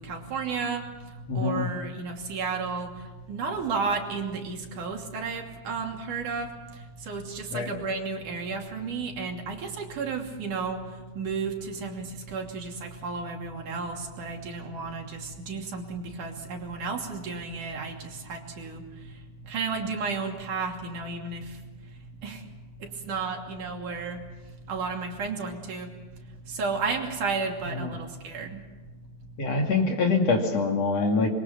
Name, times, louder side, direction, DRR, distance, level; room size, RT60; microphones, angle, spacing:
voice 1, 0.0-29.7, right 4 dB, 85° right, 1 dB, 4.3 m, -33 dB
voice 2, 1.3-1.7 7.5-7.7 27.8-27.9 29.4-31.3, left 4 dB, 55° left, 2 dB, 3.7 m, -24 dB
26.0 x 22.5 x 7.0 m, 1.2 s
omnidirectional pair, 3.5 m